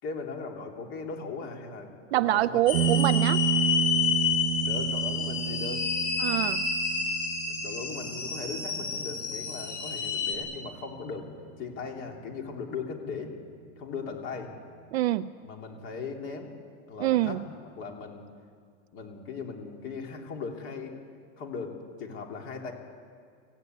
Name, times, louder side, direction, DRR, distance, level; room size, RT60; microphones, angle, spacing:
voice 1, 0.0-2.7 4.5-5.8 7.5-11.3 11.6-13.3 13.8-14.5 15.4-16.5 16.9-18.2 18.9-20.9 21.4-22.7, left 4 dB, 30° left, 2 dB, 3.1 m, -38 dB
voice 2, 2.1-3.4 6.2-6.6 14.9-15.3 17.0-17.4, right 14 dB, 50° right, 13 dB, 0.6 m, -25 dB
sound 1, 2.7-10.4, left 6 dB, 45° left, 4.0 m, -29 dB
sound 2, 2.7-11.8, right 10 dB, 80° right, 0.8 m, -32 dB
24.5 x 17.0 x 9.4 m, 2.2 s
supercardioid pair, 180°, 40 cm